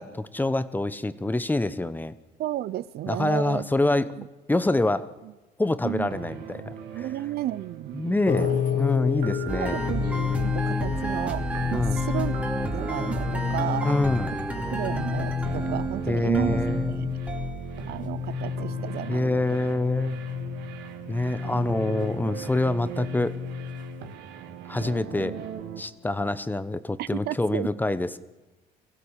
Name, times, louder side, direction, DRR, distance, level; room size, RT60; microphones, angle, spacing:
voice 1, 0.0-2.1 3.1-4.1 4.5-5.1 5.6-7.1 7.9-9.8 11.7-12.0 13.8-14.3 16.1-17.0 19.1-20.2 21.1-23.3 24.7-25.4 25.8-28.2, left 2 dB, 10° left, 14 dB, 1.1 m, -26 dB
voice 2, 2.4-3.7 4.2-4.3 5.8-6.1 6.9-9.2 9.5-11.4 11.7-12.3 12.7-14.0 14.7-17.2 17.9-19.4 21.4-21.6 27.0-27.7, right 14 dB, 70° right, 18 dB, 0.7 m, -33 dB
sound 1, 5.9-25.8, right 8 dB, 90° right, 2.4 m, -41 dB
sound 2, 8.3-24.1, left 8 dB, 50° left, 2.1 m, -31 dB
sound 3, 9.5-18.6, right 2 dB, 10° right, 2.8 m, -32 dB
24.5 x 16.0 x 8.3 m, 1.1 s
cardioid pair, 110°, 17 cm